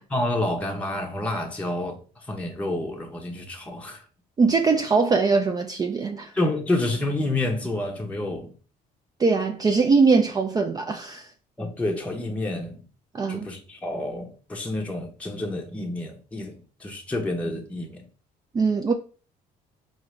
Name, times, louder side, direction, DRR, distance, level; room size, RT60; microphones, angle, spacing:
voice 1, 0.1-2.0 2.3-4.0 6.3-8.5 11.6-12.8 13.3-18.0, left 2 dB, 10° left, 0.7 m, -29 dB
voice 2, 4.4-6.3 9.2-11.3 13.1-13.5 18.5-18.9, right 4 dB, 25° right, 0.4 m, -21 dB
5.0 x 2.5 x 3.1 m
cardioid pair, 105°, 16 cm